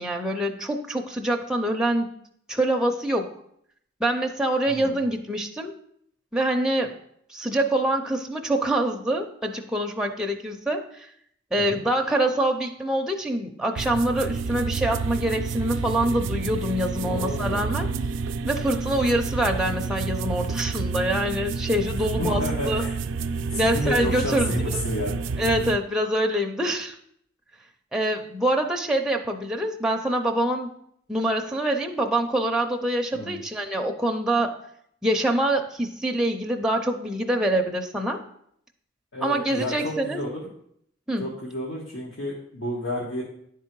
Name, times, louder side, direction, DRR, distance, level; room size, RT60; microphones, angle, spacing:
voice 1, 0.0-2.1 2.5-3.3 4.0-5.7 6.3-6.9 7.3-11.1 11.5-17.9 18.5-22.8 23.6-24.8 25.4-26.9 27.9-30.7 31.1-34.5 35.0-38.2 39.2-40.2 41.1-41.3, right 1 dB, 5° right, 2 dB, 0.5 m, -25 dB
voice 2, 4.7-5.0 11.5-11.8 16.9-17.8 22.2-22.9 23.5-25.2 33.1-33.4 39.1-40.4 41.2-43.2, left 1 dB, 75° left, -4 dB, 1.3 m, -31 dB
sound 1, 13.8-25.8, right 4 dB, 80° right, 0.4 m, -29 dB
10.0 x 3.7 x 4.5 m, 0.68 s
head